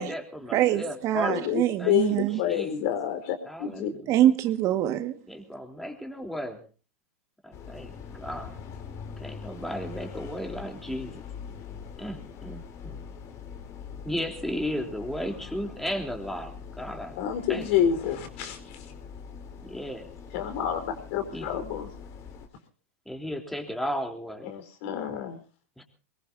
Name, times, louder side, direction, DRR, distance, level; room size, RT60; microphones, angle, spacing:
voice 1, 0.0-1.4 1.8-2.2 2.5-2.7 3.5-4.1 5.3-6.6 7.4-8.6 9.2-11.3 12.0-13.0 14.0-17.2 17.5-17.7 19.6-20.1 21.3-21.5 23.1-24.5 25.8-25.9, equal, 5° left, 3.6 m, -35 dB
voice 2, 0.5-2.4 4.1-5.1, right 12 dB, 40° right, 1.8 m, -24 dB
voice 3, 1.3-3.9 17.2-18.9 20.3-21.9 24.4-25.4, left 9 dB, 60° left, 4.4 m, -28 dB
sound 1, 7.5-22.5, left 6 dB, 40° left, 3.6 m, -43 dB
23.5 x 21.5 x 2.8 m
hypercardioid pair, 115°, 8 cm